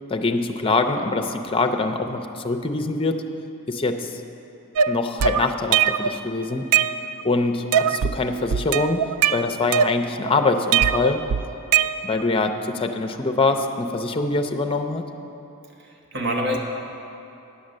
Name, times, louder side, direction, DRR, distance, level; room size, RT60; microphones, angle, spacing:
voice 1, 0.1-3.4 3.7-4.2 4.9-6.8 7.2-9.1 9.3-11.3 12.0-15.1, left 3 dB, 25° left, 6 dB, 0.5 m, -24 dB
sound 1, 4.8-6.2 6.5-7.3 7.7-8.2 8.5-10.3 10.7-12.3, right 8 dB, 90° right, 0.3 m, -21 dB
voice 2, 15.8-16.6, equal, 55° right, 1 dB, 1.0 m, -26 dB
9.7 x 7.2 x 6.4 m, 2.8 s
head